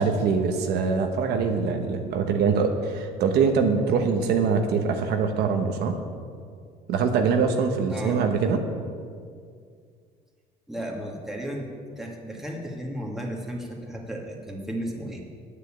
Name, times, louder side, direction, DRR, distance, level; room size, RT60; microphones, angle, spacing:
voice 1, 0.0-5.9 6.9-8.6, right 5 dB, 75° right, 4 dB, 1.1 m, -23 dB
voice 2, 7.9-8.3 10.7-11.7 12.0-15.2, right 1 dB, ahead, -2 dB, 2.0 m, -34 dB
9.3 x 6.7 x 8.7 m, 2.1 s
cardioid pair, 110°, 17 cm